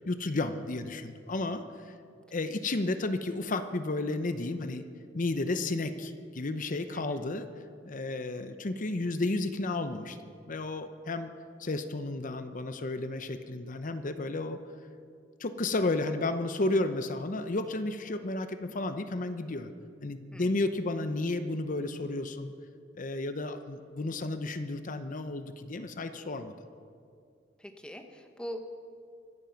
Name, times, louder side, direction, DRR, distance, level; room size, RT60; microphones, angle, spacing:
voice 1, 0.1-1.9 2.3-4.9 5.1-7.5 7.8-11.3 11.6-14.6 15.4-19.7 20.0-22.5 23.0-26.5, left 2 dB, 45° left, 9 dB, 0.7 m, -32 dB
voice 2, 27.6-28.8, equal, 5° left, 5 dB, 1.1 m, -42 dB
24.5 x 9.1 x 5.8 m, 2.3 s
head